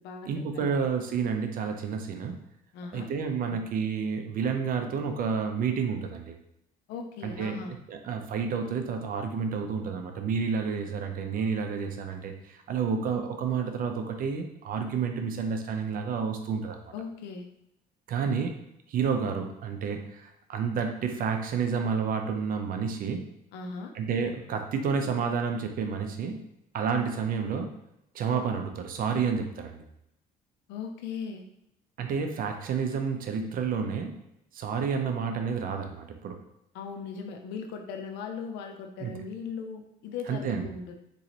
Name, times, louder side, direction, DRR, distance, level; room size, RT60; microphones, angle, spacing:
voice 1, 0.3-2.4 2.9-6.3 7.2-7.6 7.9-16.9 18.1-18.5 18.9-23.2 23.9-26.4 26.7-27.7 28.1-29.8 32.0-34.2 34.5-36.4 39.0-39.1 40.3-40.7, right 6 dB, 55° right, 5 dB, 0.6 m, -30 dB
voice 2, 2.7-3.1 3.4-3.6 6.9-7.8 16.9-17.5 23.5-23.9 30.7-31.4 36.7-41.0, left 5 dB, 85° left, 4 dB, 0.5 m, -38 dB
3.9 x 3.1 x 2.8 m, 0.82 s
cardioid pair, 110°, 17 cm